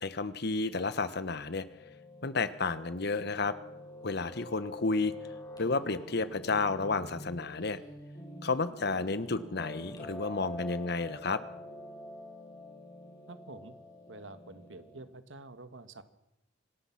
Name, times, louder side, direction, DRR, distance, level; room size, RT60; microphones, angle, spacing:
voice 1, 0.0-1.6 2.2-3.6 4.0-5.1 5.6-7.8 8.4-11.4, left 3 dB, 60° left, 13 dB, 1.2 m, -31 dB
Piano, 0.5-15.0, left 1 dB, 20° left, 6.7 m, -47 dB
voice 2, 13.3-13.8 14.1-16.0, right 2 dB, 85° right, 11 dB, 1.6 m, -48 dB
26.0 x 19.0 x 5.9 m, 0.86 s
head